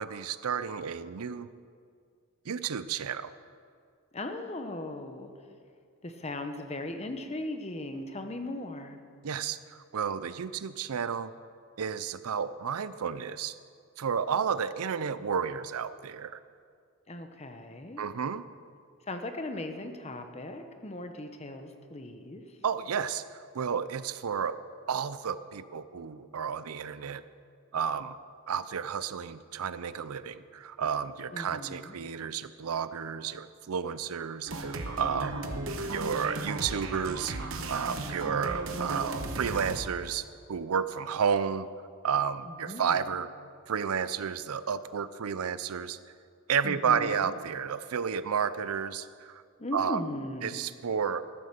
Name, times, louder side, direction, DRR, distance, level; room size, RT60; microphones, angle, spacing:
voice 1, 0.0-1.5 2.5-3.3 9.2-11.3 11.8-13.5 14.0-16.4 18.0-18.4 22.6-23.2 23.5-24.6 24.9-27.2 27.7-28.2 28.5-35.3 35.9-37.3 37.7-41.7 42.0-43.3 43.7-46.0 46.5-49.4 49.7-50.0 50.4-51.2, right 7 dB, 85° right, 14 dB, 0.5 m, -31 dB
voice 2, 4.1-5.3 6.0-9.0 17.1-18.0 19.1-22.4 31.3-32.0 35.2-35.9 38.2-38.8 42.5-43.0 46.6-47.3 49.6-50.6, left 1 dB, 30° left, 6 dB, 0.9 m, -38 dB
sound 1, 34.5-39.8, right 2 dB, 65° right, 1.0 m, -35 dB
13.5 x 8.7 x 6.7 m, 2.2 s
head